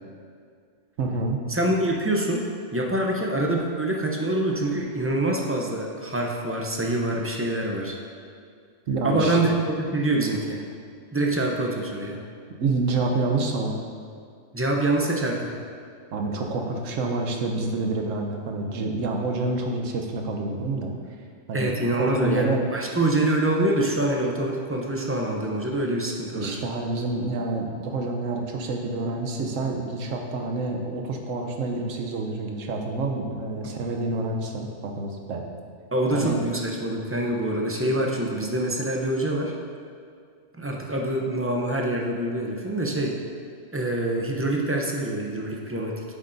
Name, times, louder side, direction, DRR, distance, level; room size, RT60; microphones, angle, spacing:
voice 1, 1.0-1.4 8.9-9.4 12.6-13.8 16.1-20.9 21.5-22.6 26.3-35.4 36.1-36.4, right 3 dB, 75° right, 2 dB, 1.2 m, -28 dB
voice 2, 1.5-2.4 2.7-8.0 9.0-10.6 11.1-12.2 14.5-15.6 21.5-26.6 35.9-39.5 40.6-43.2 43.7-46.0, right 1 dB, 20° right, -1 dB, 0.4 m, -25 dB
8.6 x 7.2 x 2.6 m, 2.2 s
omnidirectional pair, 1.3 m